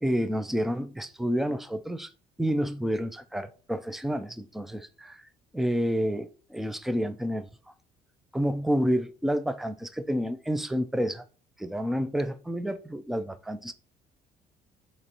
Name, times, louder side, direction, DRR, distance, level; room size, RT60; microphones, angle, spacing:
voice 1, 0.0-2.1 2.4-5.2 5.5-7.5 8.3-11.2 11.6-13.7, equal, ahead, 0.5 m, -29 dB
6.8 x 3.1 x 5.3 m
cardioid pair, 110°, 17 cm